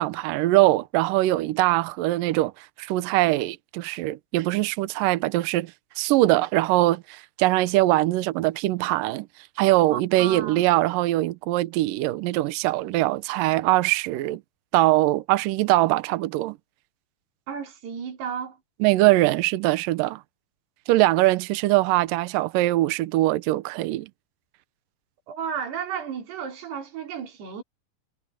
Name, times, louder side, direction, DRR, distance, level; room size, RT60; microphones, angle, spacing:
voice 1, 0.0-5.7 6.0-9.3 9.6-14.4 14.7-16.6 18.8-20.2 20.9-24.1, right 17 dB, 75° right, 2.1 m, -22 dB
voice 2, 9.9-10.6 17.5-18.6 25.3-27.6, right 7 dB, 90° right, 5.2 m, -33 dB
omnidirectional pair, 4.6 m